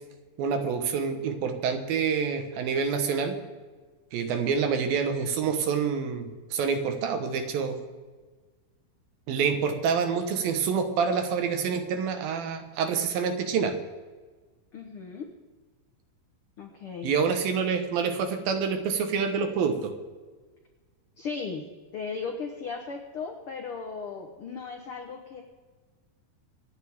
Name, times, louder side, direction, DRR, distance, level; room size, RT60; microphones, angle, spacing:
voice 1, 0.4-3.3 4.1-7.8 9.3-13.8 17.0-19.9, right 6 dB, 75° right, 7 dB, 3.0 m, -27 dB
voice 2, 14.7-15.3 16.6-17.1 21.2-21.6 21.9-25.4, left 5 dB, 80° left, 3 dB, 1.2 m, -36 dB
26.0 x 9.6 x 3.6 m, 1.4 s
omnidirectional pair, 4.4 m